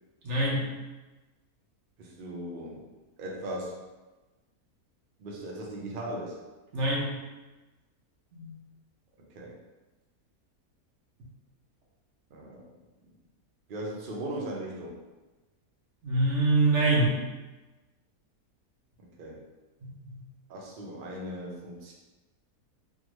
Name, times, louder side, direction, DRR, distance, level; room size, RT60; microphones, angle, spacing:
voice 1, 0.2-0.7 6.7-7.1 8.3-8.5 16.0-17.2 19.8-20.2, right 2 dB, 55° right, -4 dB, 1.0 m, -25 dB
voice 2, 2.0-2.8 3.2-3.8 5.2-6.4 9.4-9.6 12.3-12.6 13.7-14.9 19.0-19.4 20.5-21.9, right 1 dB, 75° right, -3 dB, 0.4 m, -38 dB
3.6 x 2.0 x 3.0 m, 1.2 s
omnidirectional pair, 1.6 m